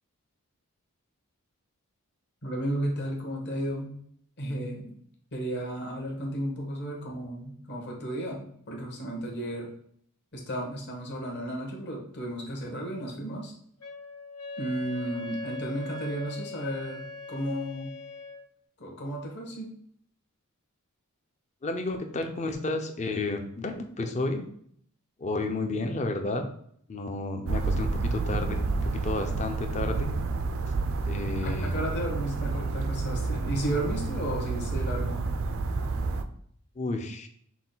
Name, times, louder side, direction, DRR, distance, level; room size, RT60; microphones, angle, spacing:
voice 1, 2.4-3.9 4.4-4.9 5.3-9.7 10.3-13.5 14.6-17.9 18.8-19.7 31.4-35.2, right 1 dB, 50° left, -1 dB, 1.3 m, -33 dB
Wind instrument woodwind instrument, 13.8-18.5, left 3 dB, 75° left, 0.6 m, -40 dB
voice 2, 21.6-24.5 25.2-26.5 26.9-30.1 31.0-31.7 36.8-37.3, left 2 dB, 30° left, 6 dB, 0.5 m, -31 dB
sound 1, 27.5-36.2, right 3 dB, 65° right, 0.4 m, -30 dB
5.8 x 2.2 x 4.0 m, 0.64 s
head